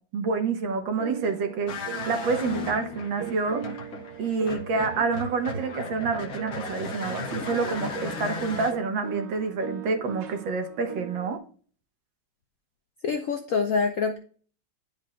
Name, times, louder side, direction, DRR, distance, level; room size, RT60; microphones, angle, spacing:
voice 1, 0.1-3.8 4.2-11.4, right 4 dB, 75° right, 6 dB, 1.8 m, -28 dB
sound 1, 0.9-11.4, right 9 dB, 55° right, 1.5 m, -40 dB
sound 2, 1.7-8.7, left 3 dB, 50° left, 1.4 m, -36 dB
voice 2, 13.0-14.2, left 5 dB, 70° left, 5 dB, 0.8 m, -25 dB
10.5 x 5.0 x 2.2 m, 0.43 s
omnidirectional pair, 2.2 m